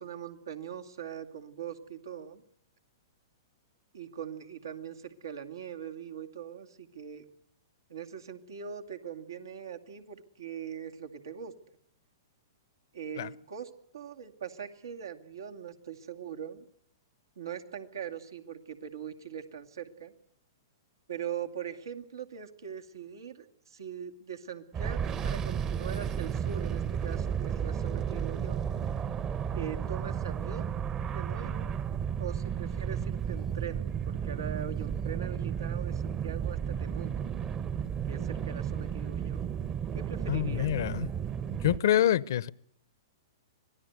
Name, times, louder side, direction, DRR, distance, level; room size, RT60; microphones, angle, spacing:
voice 1, 0.0-2.4 3.9-7.2 7.9-11.5 12.9-16.7 17.4-20.1 21.1-28.7 29.5-30.7 31.1-31.7 32.2-37.3 38.1-39.4 39.9-40.9, right 8 dB, 80° right, 2.4 m, -41 dB
sound 1, 24.7-41.8, right 8 dB, 25° right, 1.1 m, -33 dB
voice 2, 40.3-41.1 41.6-42.5, left 11 dB, 65° left, 0.8 m, -26 dB
25.5 x 18.5 x 8.1 m
hypercardioid pair, 120°, 2 cm